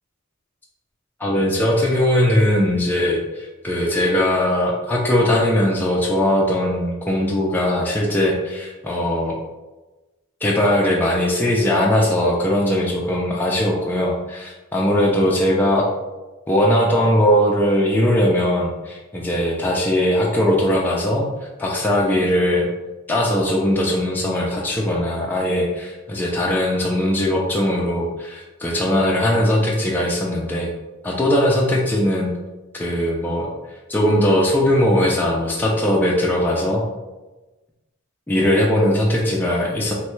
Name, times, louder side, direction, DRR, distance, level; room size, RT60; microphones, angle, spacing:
voice 1, 1.2-9.4 10.4-15.9 16.5-22.7 23.1-30.7 31.0-32.3 32.7-33.5 33.9-36.8 38.3-39.9, left 1 dB, 10° left, -3 dB, 0.3 m, -20 dB
3.1 x 2.2 x 3.0 m, 1.1 s
head